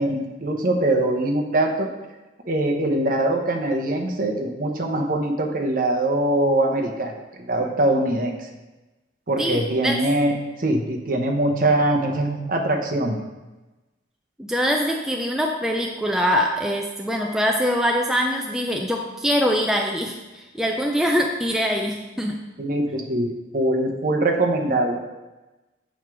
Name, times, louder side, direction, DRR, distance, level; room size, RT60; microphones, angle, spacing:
voice 1, 0.0-1.9 2.5-8.5 9.3-13.2 22.6-25.0, right 1 dB, 45° right, 2 dB, 0.8 m, -22 dB
voice 2, 9.4-10.0 14.4-22.5, equal, 5° right, 1 dB, 0.3 m, -23 dB
6.4 x 4.6 x 4.8 m, 1.1 s
head